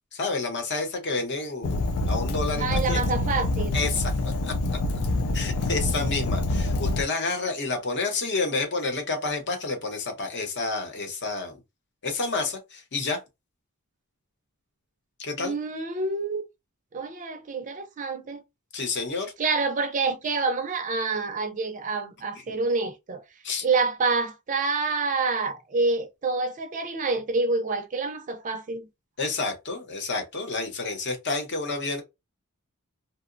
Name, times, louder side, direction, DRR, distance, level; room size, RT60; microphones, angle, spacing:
voice 1, 0.1-3.0 3.7-4.5 5.3-11.6 12.0-13.2 15.2-15.6 18.7-19.3 22.5-22.6 23.4-23.7 29.2-32.0, left 3 dB, 50° left, 0.8 m, -29 dB
Fire, 1.6-7.0, left 2 dB, 70° left, 0.4 m, -26 dB
voice 2, 2.6-3.8 15.4-16.4 16.9-18.4 19.4-23.2 23.6-28.9, right 4 dB, 35° right, 0.4 m, -27 dB
2.8 x 2.0 x 2.5 m
head